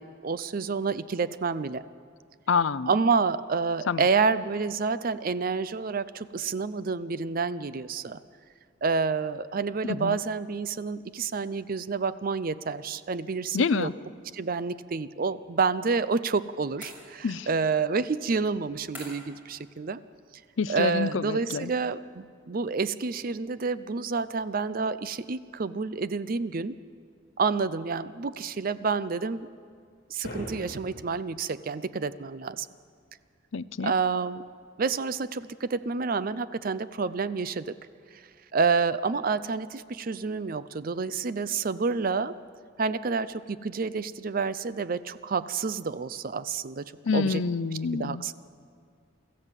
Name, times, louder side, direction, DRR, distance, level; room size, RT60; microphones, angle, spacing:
voice 1, 0.0-1.8 2.9-8.2 8.8-13.9 14.3-20.0 20.7-26.8 27.4-29.5 30.1-32.7 33.8-34.4 34.8-37.8 38.1-38.2 38.5-42.3 42.8-47.4 47.9-48.4, right 4 dB, 45° right, 15 dB, 0.5 m, -29 dB
voice 2, 2.5-2.9 3.9-4.0 9.8-10.2 13.5-13.9 17.2-17.5 20.6-21.7 33.5-33.9 47.1-48.2, left 5 dB, 70° left, 17 dB, 0.5 m, -27 dB
sound 1, 16.8-17.5 18.9-19.4, equal, 10° right, 5.8 m, -45 dB
sound 2, 30.2-31.3, equal, 50° left, 2.5 m, -39 dB
25.0 x 14.0 x 7.5 m, 2.1 s
head